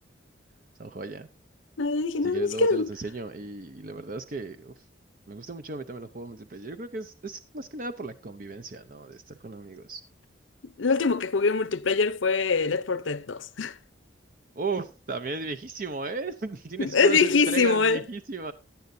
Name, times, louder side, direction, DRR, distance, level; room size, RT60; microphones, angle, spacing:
voice 1, 0.8-1.3 2.2-4.7 5.3-10.0 14.6-18.5, right 3 dB, 45° right, 0.6 m, -35 dB
voice 2, 1.8-2.9 10.8-13.8 16.8-18.0, left 4 dB, 85° left, 0.7 m, -23 dB
16.0 x 10.5 x 2.7 m
head